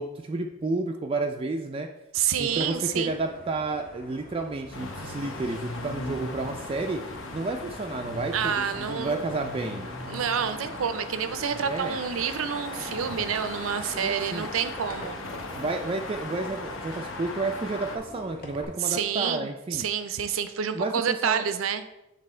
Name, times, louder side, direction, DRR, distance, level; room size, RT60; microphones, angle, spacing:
voice 1, 0.0-1.9 2.4-7.0 7.3-9.9 11.6-12.0 13.9-14.5 15.5-19.9 20.7-21.5, right 3 dB, 25° right, 3 dB, 0.3 m, -31 dB
voice 2, 2.1-3.2 8.3-9.3 10.1-15.4 18.8-21.8, right 7 dB, 85° right, 10 dB, 0.5 m, -28 dB
sound 1, 2.5-18.6, left 1 dB, 50° left, 1.3 m, -47 dB
sound 2, 4.7-18.0, left 2 dB, 70° left, 0.9 m, -38 dB
7.6 x 3.5 x 4.3 m, 0.91 s
head